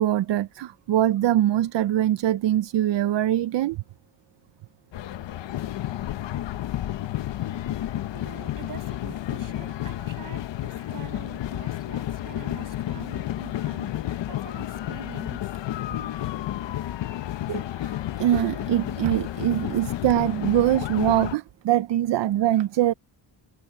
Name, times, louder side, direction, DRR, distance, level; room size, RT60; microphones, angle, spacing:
voice 1, 0.0-3.8 17.5-17.6 18.2-22.9, right 12 dB, 75° right, 0.7 m, -23 dB
sound 1, 4.9-21.4, left 13 dB, 80° left, 1.0 m, -31 dB
voice 2, 8.1-15.5, right 7 dB, 50° right, 7.9 m, -45 dB
wide cardioid pair, 175°, 43 cm